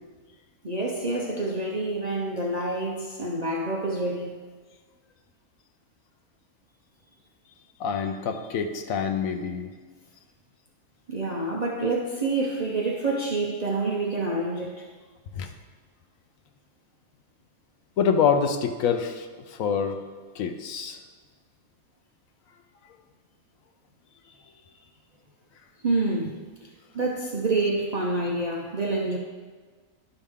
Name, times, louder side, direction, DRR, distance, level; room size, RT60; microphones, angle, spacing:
voice 1, 0.6-4.4 11.1-14.9 25.8-26.7 26.9-29.2, right 2 dB, 45° right, -2 dB, 0.6 m, -27 dB
voice 2, 7.8-9.7 15.3-15.5 18.0-20.0 20.4-21.0, left 6 dB, 70° left, 7 dB, 1.0 m, -26 dB
11.5 x 5.0 x 3.6 m, 1.4 s
omnidirectional pair, 1.6 m